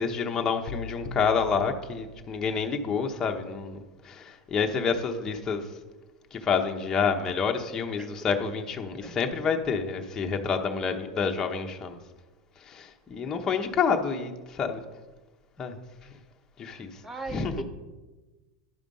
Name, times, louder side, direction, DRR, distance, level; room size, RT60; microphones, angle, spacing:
voice 1, 0.0-5.7 6.3-12.0 12.6-14.8 15.6-15.8 16.6-17.0 17.3-17.6, left 5 dB, 20° left, 3 dB, 0.8 m, -28 dB
sound 1, 0.7-2.8, left 2 dB, 60° left, 0.7 m, -41 dB
voice 2, 17.0-17.6, right 3 dB, 10° right, 8 dB, 0.7 m, -38 dB
10.5 x 5.0 x 5.4 m, 1.2 s
supercardioid pair, 145°, 3 cm